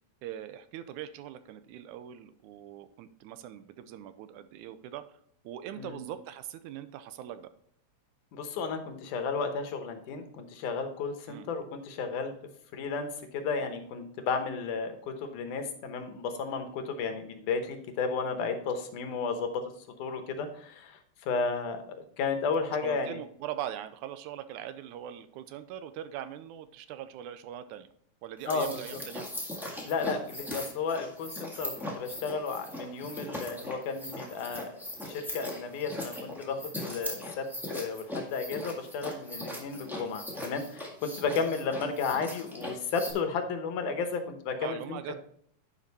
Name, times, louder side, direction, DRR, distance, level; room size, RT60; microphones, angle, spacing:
voice 1, 0.2-5.2 5.4-7.5 11.3-11.5 22.8-27.9 28.2-29.3 39.5-39.7 41.2-41.5 44.6-45.1, right 11 dB, 85° right, 12 dB, 2.0 m, -41 dB
voice 2, 8.3-12.3 12.7-19.6 20.0-23.2 28.5-28.8 29.9-34.7 35.0-37.5 37.7-45.0, left 5 dB, 85° left, 7 dB, 2.6 m, -33 dB
sound 1, 28.4-43.1, left 1 dB, ahead, 0.7 m, -39 dB
10.5 x 5.2 x 4.1 m, 0.65 s
omnidirectional pair, 3.5 m